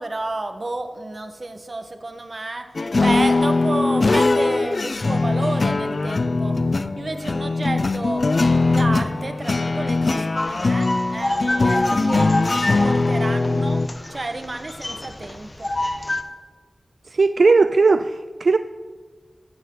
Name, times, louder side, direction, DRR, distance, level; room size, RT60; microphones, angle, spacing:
voice 1, 0.0-2.7 3.0-8.3 8.7-13.8 14.1-15.7, right 2 dB, 45° right, 6 dB, 1.5 m, -31 dB
sound 1, 2.8-13.9, left 3 dB, 55° left, 0.6 m, -21 dB
sound 2, 10.4-16.2, left 1 dB, 35° left, 1.2 m, -27 dB
voice 2, 17.1-18.6, right 4 dB, 75° right, 11 dB, 0.4 m, -17 dB
16.0 x 15.5 x 4.0 m, 1.5 s
wide cardioid pair, 65°, 0 cm